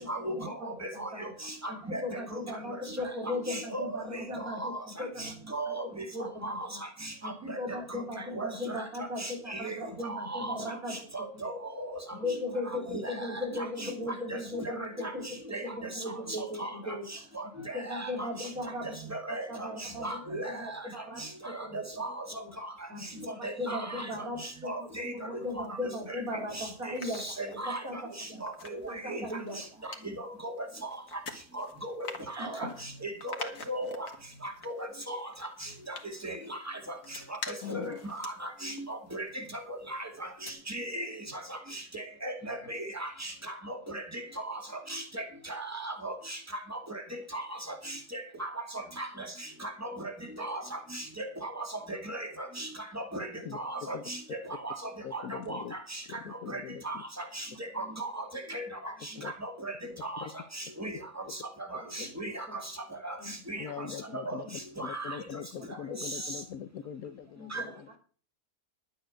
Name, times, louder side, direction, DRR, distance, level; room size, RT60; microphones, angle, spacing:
voice 1, 0.0-1.3 1.7-6.8 7.2-11.1 11.3-11.4 12.1-17.3 17.6-19.0 19.3-20.2 20.5-22.0 22.4-22.5 22.9-28.4 28.9-29.6 32.4-32.7 61.8-62.1 62.5-62.6 63.2-63.3 64.3-64.5 65.6-66.0 67.4-67.7, left 1 dB, 80° right, 1 dB, 3.9 m, -38 dB
voice 2, 3.5-3.8 4.6-4.7 5.5-5.8 6.4-6.5 8.4-8.5 9.2-9.7 10.0-10.6 11.1-11.9 12.9-13.1 13.6-13.7 15.5-15.6 16.6-16.7 17.9-18.1 19.1-19.4 20.0-20.6 22.0-22.1 23.4-23.8 24.6-25.1 26.6-26.7 27.2-27.8 28.4-28.5 29.1-29.2 30.4-30.5 31.6-32.1 33.0-33.3 33.7-34.1 34.8-35.2 36.2-36.3 37.7-37.8 38.2-38.3 38.6-38.7 39.1-39.2 39.9-40.0 40.7-41.1 41.9-43.3 44.5-44.6 44.9-45.2 45.5-46.1 47.3-47.4 48.4-48.5 49.0-49.1 49.8-49.9 50.4-50.6 51.2-51.3 51.9-52.3 52.6-52.7 53.1-53.3 53.5-54.2 54.6-54.7 55.1-55.6 56.5-56.6 56.9-57.0 57.4-57.5 57.8-58.2 58.5-58.6 59.4-59.5 60.0-60.1 60.8-60.9 61.7-62.4 63.0-63.1 63.5-63.6 64.3-64.4 64.8-65.2 67.5-67.6, right 2 dB, 10° right, 4 dB, 2.2 m, -36 dB
sound 1, 25.4-26.3 26.7-39.9 40.3-40.5, left 4 dB, 70° left, 2.1 m, -47 dB
voice 3, 37.6-38.0 53.5-53.6 53.9-54.0 55.0-55.7 56.2-56.8 59.2-59.3 63.6-68.0, left 8 dB, 90° left, 14 dB, 1.3 m, -41 dB
11.5 x 8.9 x 6.2 m, 0.41 s
omnidirectional pair, 1.5 m